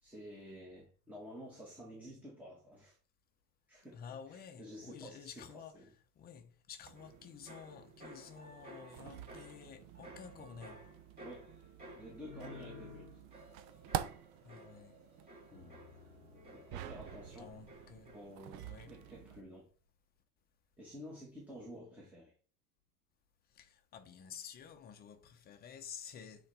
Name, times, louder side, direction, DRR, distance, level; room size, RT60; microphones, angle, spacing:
voice 1, 0.0-3.0 3.7-4.0 4.3-5.4 5.7-5.9 11.2-11.5 11.9-13.1 15.5-15.8 16.5-17.5 18.1-19.7 20.8-22.3, equal, 5° right, 1.5 m, -51 dB
voice 2, 3.9-10.9 14.4-15.0 17.4-18.2 18.6-19.0 23.5-26.5, left 7 dB, 25° left, 0.8 m, -51 dB
sound 1, 6.9-19.4, right 11 dB, 55° right, 0.7 m, -48 dB
sound 2, 7.0-18.6 18.8-19.4, left 1 dB, 25° right, 3.2 m, -55 dB
sound 3, 16.7-19.1, right 11 dB, 90° right, 0.8 m, -50 dB
8.4 x 4.1 x 3.4 m
cardioid pair, 160°, 39 cm